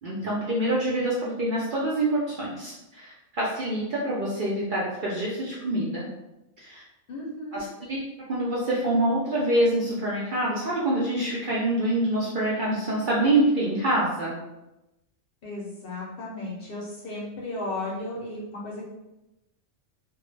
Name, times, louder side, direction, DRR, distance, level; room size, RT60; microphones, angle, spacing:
voice 1, 0.0-6.1 6.6-6.8 7.5-8.0 8.3-14.3, right 1 dB, 60° right, -6 dB, 0.5 m, -26 dB
voice 2, 7.1-7.6 15.4-18.8, left 2 dB, 60° left, -4 dB, 0.7 m, -35 dB
2.1 x 2.0 x 3.1 m, 0.96 s
omnidirectional pair, 1.3 m